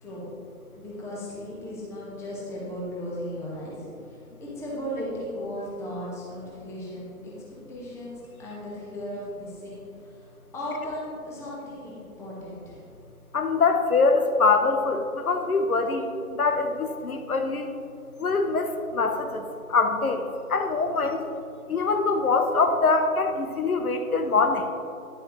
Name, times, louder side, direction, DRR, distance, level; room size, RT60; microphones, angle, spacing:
voice 1, 0.7-7.1 7.7-8.1 8.4-12.8, equal, 5° left, -6 dB, 1.1 m, -36 dB
voice 2, 13.3-17.7 18.2-21.3 21.7-24.7, left 4 dB, 75° left, 6 dB, 1.1 m, -24 dB
11.0 x 10.5 x 3.2 m, 2.5 s
figure-of-eight pair, 140°, 44 cm